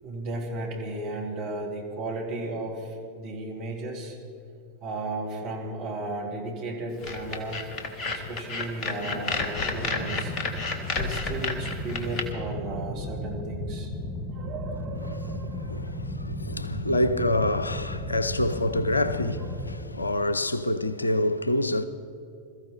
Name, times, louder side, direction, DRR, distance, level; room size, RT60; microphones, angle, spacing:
voice 1, 0.0-4.2 4.8-7.7 8.0-10.3 10.9-13.9 14.3-16.0 18.5-18.6 19.4-19.7, right 2 dB, 45° right, 3.3 m, -35 dB
sound 1, 7.0-12.2, left 3 dB, 35° left, 1.8 m, -31 dB
sound 2, 7.4-19.8, left 1 dB, 20° left, 1.9 m, -35 dB
voice 2, 15.7-21.8, left 1 dB, 80° left, 0.7 m, -27 dB
22.0 x 14.5 x 4.6 m
figure-of-eight pair, 90°, 0 cm